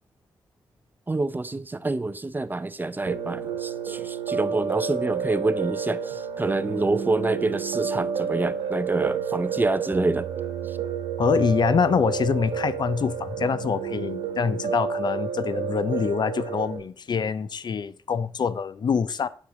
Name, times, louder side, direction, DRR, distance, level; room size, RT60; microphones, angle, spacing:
voice 1, 1.1-10.3 10.7-10.8, right 2 dB, 20° right, 0.5 m, -27 dB
Piano, 3.1-16.8, right 7 dB, 90° right, 1.1 m, -30 dB
voice 2, 11.2-19.3, left 6 dB, 55° left, 0.5 m, -25 dB
7.0 x 6.4 x 3.8 m
cardioid pair, 55°, 9 cm